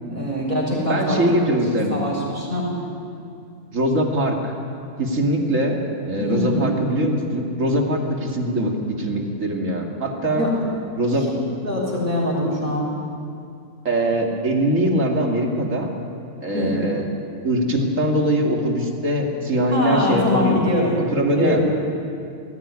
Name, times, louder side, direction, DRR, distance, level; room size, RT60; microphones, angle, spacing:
voice 1, 0.1-1.2 1.9-2.7 6.2-6.7 10.3-10.5 11.6-12.9 16.5-16.7 19.7-21.0 21.3-21.6, left 1 dB, 35° right, -3 dB, 6.5 m, -23 dB
voice 2, 0.9-2.0 3.7-4.5 5.0-5.8 6.0-8.7 9.0-10.4 11.0-11.2 13.8-15.9 16.4-17.1 17.4-20.8 21.1-21.6, right 1 dB, 55° right, 1 dB, 2.8 m, -22 dB
19.5 x 16.0 x 9.8 m, 2.5 s
omnidirectional pair, 1.6 m